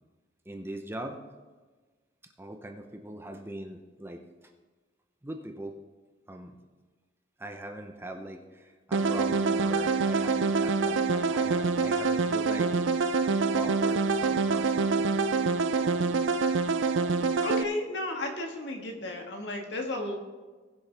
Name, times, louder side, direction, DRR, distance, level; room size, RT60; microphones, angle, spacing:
voice 1, 0.5-1.2 2.4-4.2 5.2-5.7 6.3-6.6 7.4-12.7 13.5-15.1, right 1 dB, 10° right, 5 dB, 0.7 m, -40 dB
sound 1, 8.9-17.6, right 4 dB, 90° right, 0.6 m, -26 dB
voice 2, 17.4-20.2, left 2 dB, 65° left, 2 dB, 1.7 m, -33 dB
19.5 x 7.1 x 3.5 m, 1.4 s
head